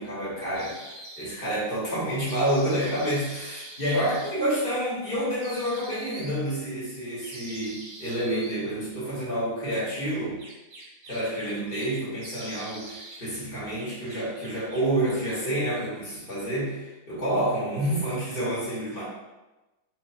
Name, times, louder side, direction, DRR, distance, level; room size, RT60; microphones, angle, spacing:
voice 1, 0.0-10.4 11.1-19.0, right 1 dB, 35° left, -8 dB, 1.1 m, -29 dB
sound 1, 0.5-1.3 2.2-4.3 5.3-6.3 7.2-8.6 10.0-11.9 12.2-13.2 13.5-14.9, right 2 dB, 90° right, 1.7 m, -44 dB
4.6 x 2.4 x 2.5 m, 1.1 s
omnidirectional pair, 2.0 m